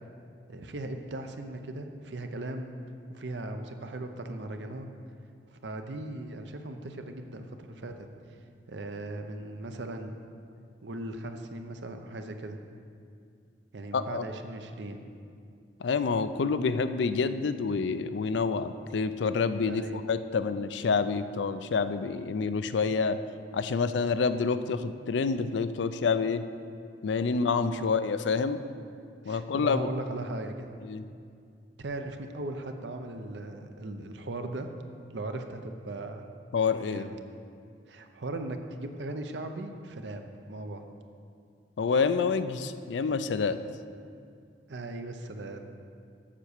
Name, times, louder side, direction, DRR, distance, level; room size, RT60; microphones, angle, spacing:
voice 1, 0.5-2.7 3.1-4.9 5.5-7.9 8.7-10.1 10.8-12.6 13.7-15.0 19.7-20.0 27.6-27.9 29.2-30.7 31.8-34.7 35.1-36.3 36.8-37.1 37.9-40.2 40.5-40.9 44.7-45.7, right 2 dB, 75° right, 6 dB, 0.7 m, -38 dB
voice 2, 13.9-14.2 15.8-23.2 23.5-26.4 27.0-28.6 29.3-29.9 30.8-31.0 36.5-37.0 41.8-43.6, left 5 dB, 80° left, 11 dB, 0.4 m, -28 dB
7.5 x 6.8 x 6.5 m, 2.4 s
head